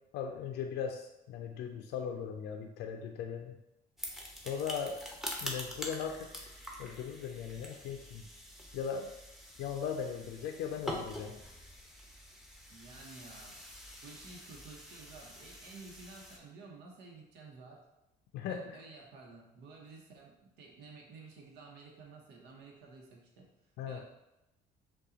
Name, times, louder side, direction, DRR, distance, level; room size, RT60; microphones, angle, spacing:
voice 1, 0.1-3.6 4.4-5.0 5.4-6.5 6.8-8.3 8.7-9.1 9.6-11.4 18.3-18.8 23.8-24.0, left 7 dB, 80° left, 4 dB, 0.4 m, -38 dB
sound 1, 4.0-16.4, equal, ahead, 0.8 m, -45 dB
voice 2, 12.7-13.6 14.0-17.8 18.5-23.5 23.9-24.0, right 3 dB, 85° right, 0 dB, 0.9 m, -52 dB
5.5 x 2.3 x 3.9 m, 0.92 s
cardioid pair, 110°, 17 cm